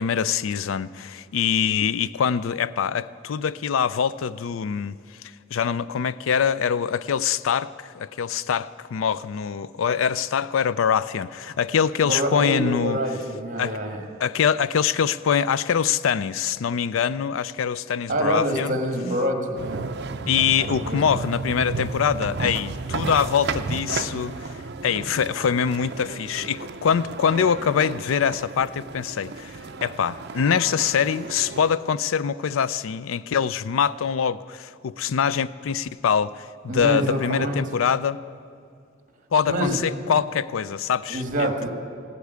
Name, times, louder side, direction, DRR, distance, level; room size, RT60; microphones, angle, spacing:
voice 1, 0.0-5.0 5.2-13.0 13.6-13.8 14.2-18.8 20.3-24.5 24.8-38.2 39.3-41.7, left 7 dB, 90° left, 0.4 m, -24 dB
voice 2, 12.0-14.0 18.1-19.8 20.6-21.0 36.7-37.6 39.5-39.8 41.1-41.7, right 1 dB, 40° right, 1.8 m, -26 dB
sound 1, 19.6-31.7, right 4 dB, 55° right, 0.6 m, -33 dB
16.0 x 8.4 x 9.4 m
head